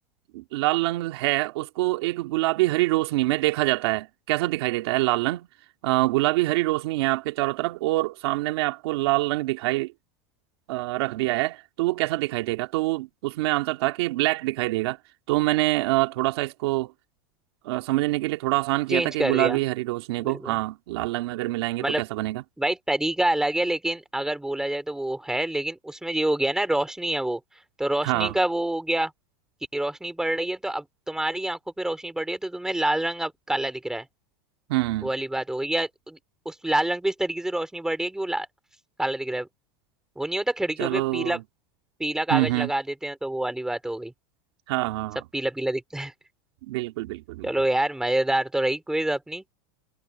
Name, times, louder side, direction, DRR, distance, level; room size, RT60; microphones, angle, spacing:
voice 1, 0.3-5.5 5.8-9.9 10.7-15.0 15.3-16.9 17.6-22.4 28.0-28.3 34.7-35.1 40.8-41.4 42.3-42.7 44.7-45.2 46.6-47.5, right 20 dB, 75° right, 2.2 m, -25 dB
voice 2, 18.9-19.6 20.2-20.6 21.8-22.0 22.6-27.4 27.8-29.1 29.7-34.1 35.0-36.2 36.5-38.5 39.0-39.5 40.2-41.4 42.0-44.1 45.3-46.1 47.4-49.4, right 1 dB, 5° right, 4.1 m, -27 dB
supercardioid pair, 130°, 13 cm